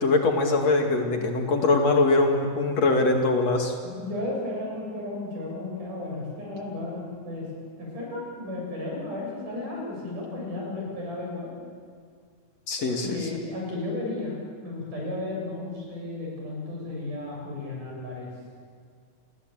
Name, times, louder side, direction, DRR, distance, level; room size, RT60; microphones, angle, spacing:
voice 1, 0.0-3.7 12.7-13.2, left 3 dB, 55° left, 3 dB, 3.4 m, -22 dB
voice 2, 3.8-7.5 7.8-11.5 12.8-18.3, left 2 dB, 75° right, -2 dB, 9.5 m, -34 dB
29.0 x 21.0 x 9.1 m, 2.1 s
omnidirectional pair, 3.7 m